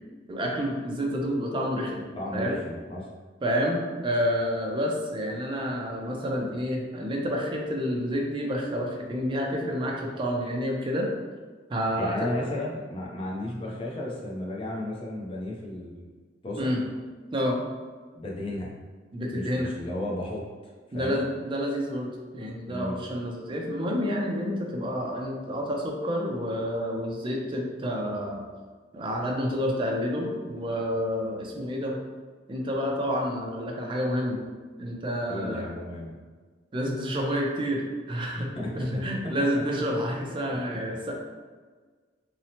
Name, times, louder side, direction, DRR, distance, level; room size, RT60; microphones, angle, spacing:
voice 1, 0.3-2.6 3.4-11.1 11.7-12.3 16.6-16.8 17.3-17.6 19.1-19.7 20.9-28.4 28.9-32.0 32.5-34.4 34.8-35.6 36.7-38.5 38.7-41.1, equal, 25° right, 0 dB, 0.4 m, -29 dB
voice 2, 2.2-3.1 12.0-16.1 16.4-16.7 18.1-18.7 19.3-21.2 22.7-23.0 35.3-36.2 38.4-39.3, left 1 dB, 30° left, -3 dB, 0.5 m, -34 dB
2.8 x 2.0 x 2.7 m, 1.5 s
head